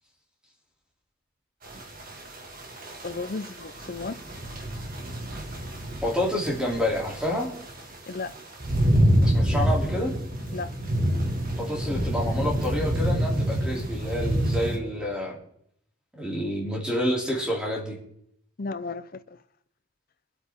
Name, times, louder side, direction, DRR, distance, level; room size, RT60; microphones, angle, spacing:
sound 1, 1.6-14.8, equal, 40° right, 2.0 m, -27 dB
voice 1, 3.0-4.2 8.1-8.4 10.5-10.7 18.6-19.2, left 3 dB, 40° left, 0.6 m, -34 dB
voice 2, 6.0-7.5 9.2-10.1 11.5-15.4 16.1-18.0, equal, 5° right, 2.9 m, -28 dB
24.0 x 8.2 x 3.6 m
head